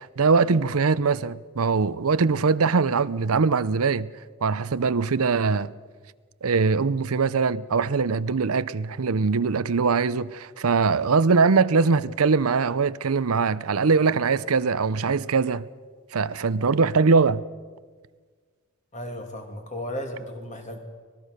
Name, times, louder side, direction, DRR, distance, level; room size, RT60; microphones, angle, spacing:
voice 1, 0.0-4.1 4.4-5.7 6.4-15.7 16.1-17.4, right 4 dB, 85° right, 0.7 m, -22 dB
voice 2, 18.9-20.8, equal, 35° left, 2.9 m, -35 dB
25.0 x 19.5 x 6.6 m
head